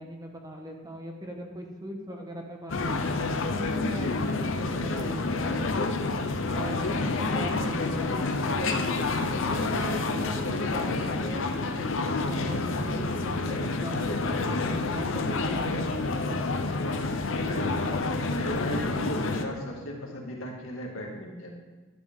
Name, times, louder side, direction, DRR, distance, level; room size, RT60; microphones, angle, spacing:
voice 1, 0.0-3.0 3.4-5.7 6.5-8.9 9.5-11.8 12.2-16.9, equal, 20° right, 1 dB, 1.3 m, -39 dB
sound 1, 2.7-19.4, left 3 dB, 70° left, 0.7 m, -28 dB
voice 2, 17.4-21.5, left 1 dB, 90° left, -1 dB, 2.1 m, -36 dB
11.5 x 9.1 x 3.7 m, 1.2 s
head